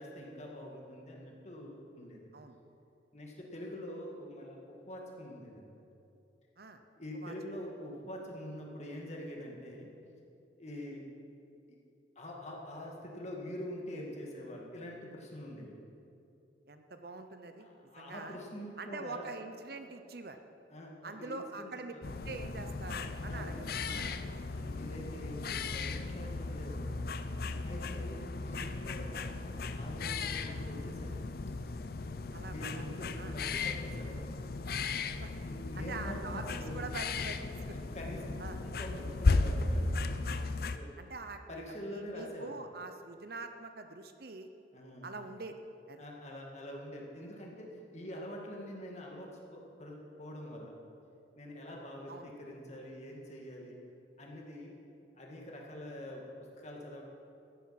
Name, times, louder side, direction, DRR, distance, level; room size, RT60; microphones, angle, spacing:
voice 1, 0.0-2.2 3.1-5.8 7.0-9.9 10.6-11.1 11.7-11.8 12.2-15.7 17.6-19.3 20.7-22.0 23.2-24.2 24.5-27.0 27.6-31.2 32.3-34.2 35.4-36.9 37.6-40.0 40.7-41.0 41.5-42.5 44.7-45.1 46.0-50.7 51.4-53.8 54.2-54.8 55.1-56.2 56.6-57.0, equal, 35° left, -1 dB, 2.0 m, -45 dB
voice 2, 16.7-17.7 17.9-18.4 18.8-20.4 21.0-21.9 22.2-24.2 28.4-28.6 32.3-33.4 35.2-35.3 35.7-37.4 38.4-38.6 40.3-40.5 41.0-44.5 45.0-45.6 45.9-46.0 52.1-52.3, right 3 dB, 55° right, 7 dB, 0.8 m, -44 dB
sound 1, 22.0-40.8, left 3 dB, 55° left, 0.5 m, -36 dB
15.0 x 10.5 x 5.9 m, 2.7 s
head